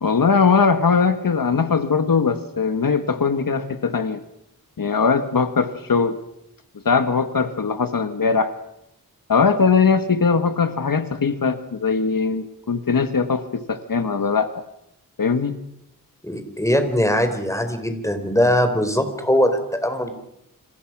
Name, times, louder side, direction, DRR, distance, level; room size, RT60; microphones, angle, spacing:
voice 1, 0.0-4.2 4.8-6.2 6.8-8.5 9.3-14.6 15.2-15.5, left 5 dB, 70° left, 9 dB, 1.6 m, -20 dB
voice 2, 16.2-20.1, equal, 10° left, 7 dB, 4.2 m, -21 dB
28.5 x 26.5 x 6.1 m, 0.79 s
wide cardioid pair, 95°, 35 cm